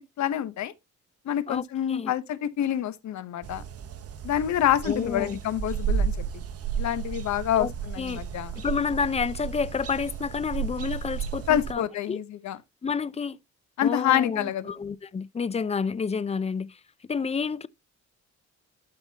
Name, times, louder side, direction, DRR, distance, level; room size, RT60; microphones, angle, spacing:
voice 1, 0.2-0.7 1.2-3.6 4.2-6.4 6.8-8.5 11.5-12.6 13.8-14.8, left 11 dB, 65° left, 1.1 m, -27 dB
voice 2, 1.5-2.1 4.8-5.4 7.6-8.2 8.6-12.2 12.8-13.4 13.8-17.7, left 5 dB, 20° left, 0.5 m, -30 dB
sound 1, 3.4-11.7, right 7 dB, 50° right, 1.2 m, -33 dB
12.5 x 5.2 x 2.9 m
cardioid pair, 90°, 30 cm